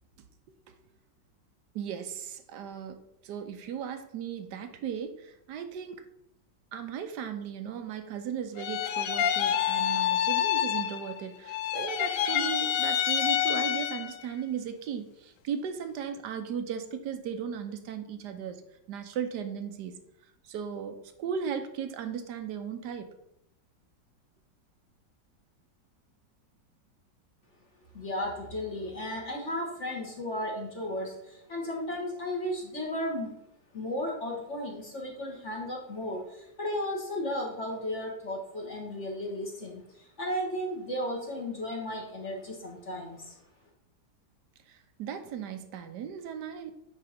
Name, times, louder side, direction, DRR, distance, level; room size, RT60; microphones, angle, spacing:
voice 1, 1.7-6.1 6.7-18.6 18.9-20.0 20.4-23.1 44.7-46.8, right 7 dB, 70° right, 8 dB, 1.3 m, -36 dB
sound 1, 8.6-11.2 11.5-14.2, left 10 dB, 80° left, 1.2 m, -28 dB
voice 2, 27.9-33.4 33.7-43.4, left 1 dB, 40° left, -2 dB, 1.7 m, -34 dB
9.2 x 3.6 x 5.1 m, 0.80 s
omnidirectional pair, 1.9 m